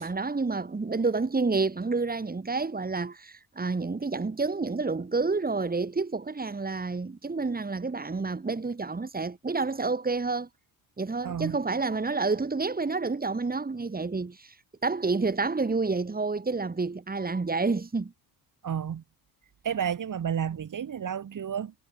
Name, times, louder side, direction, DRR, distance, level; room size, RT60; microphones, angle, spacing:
voice 1, 0.0-10.5 11.0-14.5 14.8-18.1, right 3 dB, 20° right, 6.1 m, -29 dB
voice 2, 11.2-11.6 18.6-19.0 19.6-21.7, right 8 dB, 50° right, 6.7 m, -31 dB
cardioid pair, 90°, 41 cm